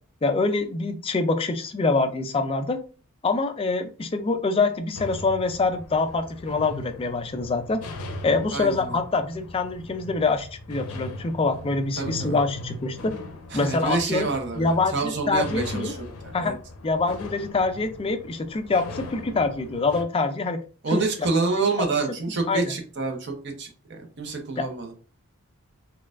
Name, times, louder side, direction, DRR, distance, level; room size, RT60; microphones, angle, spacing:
voice 1, 0.2-2.8 3.2-7.8 8.2-13.1 13.5-14.3 14.6-15.9 16.3-16.6 16.8-20.6 20.9-21.3 21.6-21.7 22.5-22.7 24.6-24.7, left 3 dB, 25° left, 8 dB, 0.3 m, -25 dB
sound 1, 4.9-20.0, left 2 dB, 80° left, 0.6 m, -39 dB
voice 2, 8.5-9.0 12.0-12.4 13.5-16.5 20.8-24.9, right 3 dB, 50° right, 3 dB, 0.7 m, -28 dB
4.1 x 2.3 x 2.4 m, 0.37 s
head